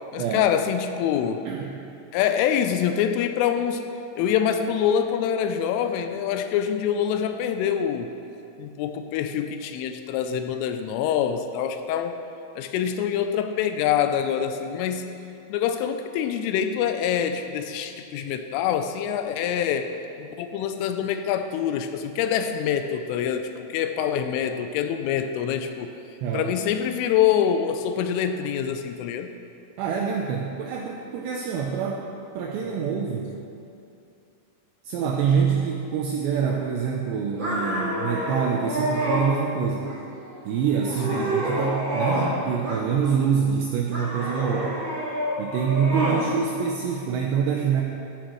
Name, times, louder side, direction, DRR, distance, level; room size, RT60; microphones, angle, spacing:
voice 1, 0.1-1.4 2.1-3.8 4.2-8.1 8.6-12.1 12.6-15.1 15.5-25.9 26.3-29.3 32.6-32.7 41.1-41.3, left 8 dB, 85° left, 8 dB, 3.0 m, -25 dB
voice 2, 26.2-26.5 29.8-32.1 32.4-33.3 34.8-39.9 40.5-44.8 45.4-47.8, right 7 dB, 85° right, 0 dB, 2.5 m, -26 dB
sound 1, 37.4-39.3 39.8-40.3 40.7-42.3 42.6-43.3 43.9-46.2, right 1 dB, 45° right, 1.5 m, -28 dB
14.0 x 13.0 x 3.1 m, 2.6 s
omnidirectional pair, 5.9 m